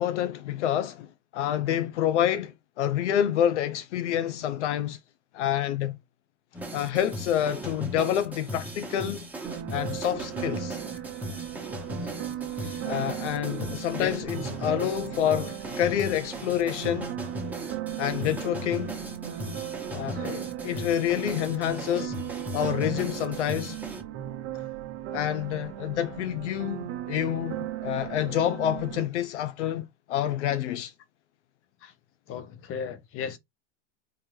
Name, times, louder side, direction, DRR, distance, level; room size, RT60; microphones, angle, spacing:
voice 1, 0.0-5.0 5.3-6.0 6.7-9.3 9.7-10.8 12.8-17.1 18.0-18.9 19.9-22.2 22.5-23.8 24.5-24.6 25.1-30.9, left 10 dB, 90° left, 0.5 m, -28 dB
sound 1, 6.5-24.0, equal, 5° right, 1.0 m, -37 dB
sound 2, 9.4-29.0, right 13 dB, 45° right, 0.7 m, -37 dB
voice 2, 32.3-33.4, left 7 dB, 40° left, 0.8 m, -35 dB
3.8 x 2.5 x 3.1 m
supercardioid pair, 120°, 34 cm